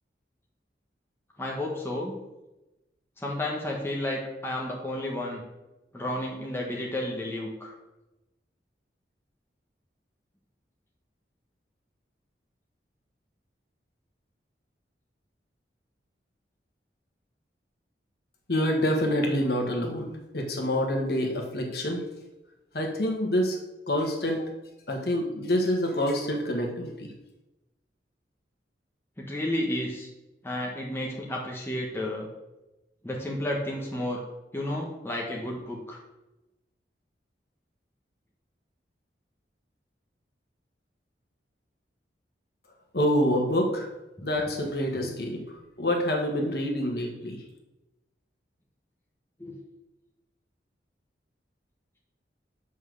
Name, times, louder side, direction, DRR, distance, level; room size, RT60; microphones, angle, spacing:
voice 1, 1.4-2.1 3.2-5.4 5.9-7.7 29.2-30.1 30.4-32.3 33.0-34.2 34.5-36.0 49.4-49.5, left 1 dB, 15° left, -2 dB, 1.3 m, -32 dB
voice 2, 18.5-22.0 22.7-23.6 23.9-24.5 24.9-27.1 42.9-43.9 44.2-45.4 45.8-47.4, equal, 55° left, 1 dB, 1.6 m, -27 dB
7.5 x 5.6 x 6.4 m, 0.98 s
head